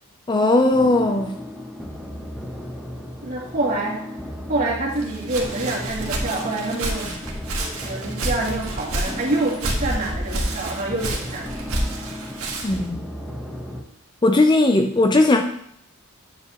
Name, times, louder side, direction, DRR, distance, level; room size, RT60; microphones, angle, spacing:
voice 1, 0.3-1.4 12.6-13.0 14.2-15.4, left 2 dB, 20° left, 5 dB, 0.5 m, -17 dB
sound 1, 0.7-13.8, equal, ahead, 1.0 m, -35 dB
voice 2, 3.2-4.0 4.5-7.3 7.6-11.6, right 2 dB, 40° right, -5 dB, 2.7 m, -26 dB
Walk footsteps, 5.0-12.9, right 1 dB, 70° right, 1.7 m, -29 dB
9.5 x 7.8 x 3.0 m, 0.68 s
head